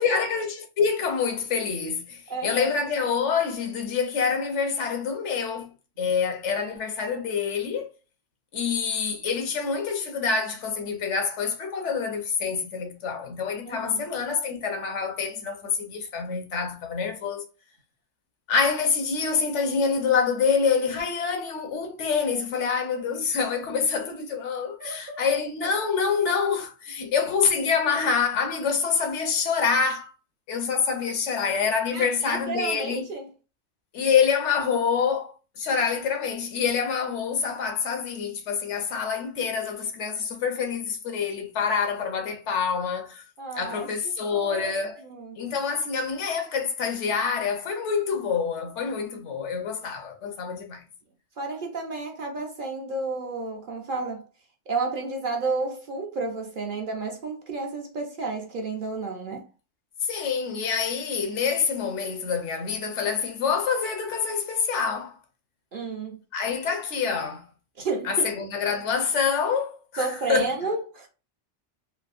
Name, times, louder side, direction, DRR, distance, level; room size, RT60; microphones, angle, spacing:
voice 1, 0.0-7.9 8.5-17.4 18.5-30.1 30.5-33.1 33.9-43.2 43.6-45.0 45.4-50.8 60.0-65.2 66.3-67.5 68.0-70.5, left 6 dB, 75° left, 1.0 m, -26 dB
voice 2, 2.3-2.7 13.7-14.1 24.8-25.2 31.9-33.3 43.4-43.9 44.3-44.8 45.0-45.4 51.4-54.2 54.7-59.5 65.7-66.2 67.8-68.3 70.0-71.1, right 3 dB, 55° right, 0.7 m, -31 dB
3.4 x 2.6 x 2.4 m
omnidirectional pair, 1.2 m